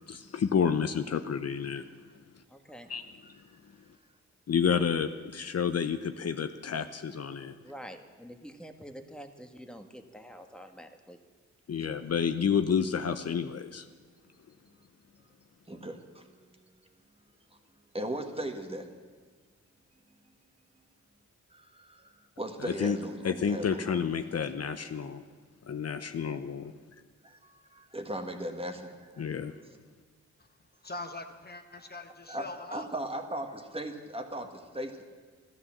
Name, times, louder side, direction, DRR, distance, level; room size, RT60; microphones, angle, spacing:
voice 1, 0.1-1.9 2.9-3.0 4.5-7.5 11.7-13.9 22.6-23.0 23.2-25.2 25.7-26.7 29.2-29.5, left 7 dB, 55° left, 9 dB, 0.7 m, -30 dB
voice 2, 2.5-2.9 7.6-11.2, equal, 5° left, 5 dB, 1.4 m, -47 dB
voice 3, 15.7-16.3 17.9-18.9 21.5-24.0 27.2-29.3 29.6-29.8 31.7-31.9 32.3-35.0, right 1 dB, 20° right, 5 dB, 1.6 m, -38 dB
voice 4, 30.8-32.9, left 2 dB, 30° left, 6 dB, 1.1 m, -42 dB
13.5 x 13.0 x 7.3 m, 1.5 s
cardioid pair, 75°, 30 cm